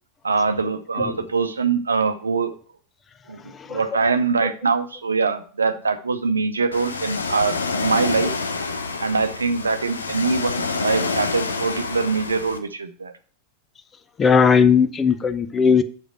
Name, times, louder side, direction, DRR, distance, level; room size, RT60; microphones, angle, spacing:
voice 1, 0.2-2.5 3.3-8.3 9.0-13.1, right 4 dB, 75° right, 10 dB, 0.8 m, -23 dB
voice 2, 3.4-3.8 14.2-15.8, left 6 dB, 20° left, 11 dB, 0.6 m, -18 dB
Ocean, 6.7-12.6, left 4 dB, 75° left, 0.8 m, -27 dB
7.3 x 5.0 x 6.3 m, 0.42 s
figure-of-eight pair, 90°, 0 cm